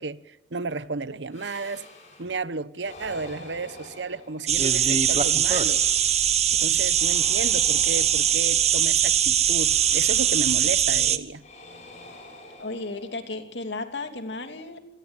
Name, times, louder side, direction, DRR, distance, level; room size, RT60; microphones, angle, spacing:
voice 1, 0.0-1.9 2.2-5.8 6.6-11.4, right 3 dB, 90° right, 1.0 m, -33 dB
sound 1, 1.3-2.4 2.8-4.8 5.2-6.5 6.9-8.9 9.5-10.9 11.4-13.5, left 2 dB, 40° left, 7.8 m, -47 dB
sound 2, 4.5-11.2, right 9 dB, 40° right, 1.2 m, -21 dB
voice 2, 12.6-14.8, left 3 dB, 80° left, 3.0 m, -34 dB
27.5 x 18.5 x 8.9 m
head